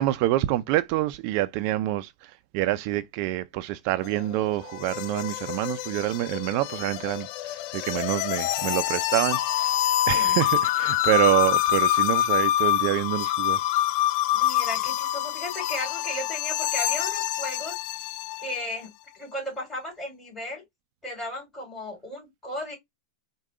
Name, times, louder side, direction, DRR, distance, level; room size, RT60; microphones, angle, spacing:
voice 1, 0.0-9.7 10.1-13.6, right 15 dB, 50° right, 0.4 m, -26 dB
sound 1, 4.0-18.7, left 13 dB, 50° left, 0.3 m, -26 dB
voice 2, 10.1-10.4 14.3-17.8 18.4-20.6 21.0-22.8, left 1 dB, 15° left, 3.1 m, -35 dB
4.7 x 2.2 x 3.7 m
hypercardioid pair, 115°, 2 cm